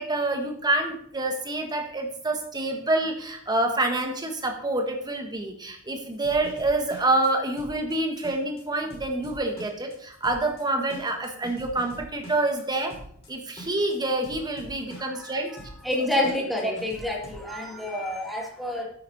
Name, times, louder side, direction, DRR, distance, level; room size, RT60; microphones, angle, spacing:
voice 1, 0.0-12.9 13.3-15.6 15.9-16.7, right 2 dB, 20° right, 4 dB, 1.5 m, -27 dB
sound 1, 6.1-17.4, right 1 dB, 25° left, 4.5 m, -44 dB
voice 2, 15.0-18.9, left 1 dB, ahead, -1 dB, 2.3 m, -29 dB
9.8 x 8.6 x 4.1 m, 0.64 s
head